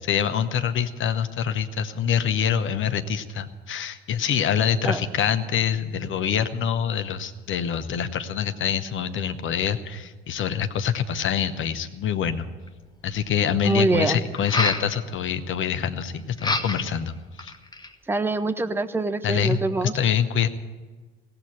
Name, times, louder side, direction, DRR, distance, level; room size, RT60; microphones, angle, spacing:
voice 1, 0.1-12.5 13.0-17.5 19.2-20.5, left 8 dB, 40° left, 10 dB, 0.9 m, -25 dB
sound 1, 12.7-12.8 14.3-14.9 16.4-17.0 17.4-17.9, left 2 dB, 15° left, 1.0 m, -27 dB
voice 2, 13.6-14.2 18.1-20.0, right 2 dB, 5° right, 10 dB, 0.7 m, -24 dB
17.0 x 7.8 x 10.0 m, 1.3 s
figure-of-eight pair, 60°, 32 cm